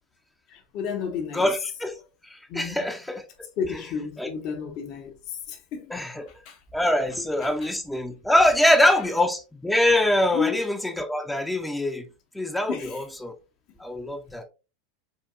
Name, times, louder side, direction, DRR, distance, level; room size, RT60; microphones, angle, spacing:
voice 1, 0.5-1.5 2.5-2.9 3.6-6.6 7.4-7.7 8.7-8.8 10.3-10.6 12.7-13.0, left 7 dB, 50° left, 0.7 m, -32 dB
voice 2, 1.3-2.0 2.3-3.3 4.2-4.3 5.9-6.3 6.7-12.1 12.3-13.3 13.8-14.4, left 1 dB, 5° left, 0.5 m, -24 dB
4.5 x 2.6 x 2.4 m
hypercardioid pair, 85°, 0 cm